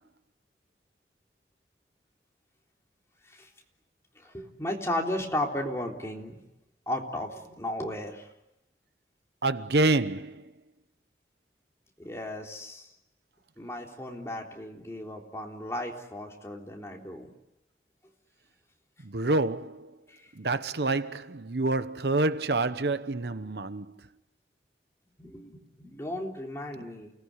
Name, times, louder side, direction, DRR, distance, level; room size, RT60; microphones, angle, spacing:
voice 1, 4.2-6.3 6.9-8.3 12.0-12.9 13.6-17.3 25.2-27.1, left 1 dB, 15° left, 3.7 m, -35 dB
voice 2, 9.4-10.5 19.0-19.9 20.4-24.0, right 2 dB, 70° right, 0.9 m, -27 dB
29.5 x 19.5 x 9.7 m
head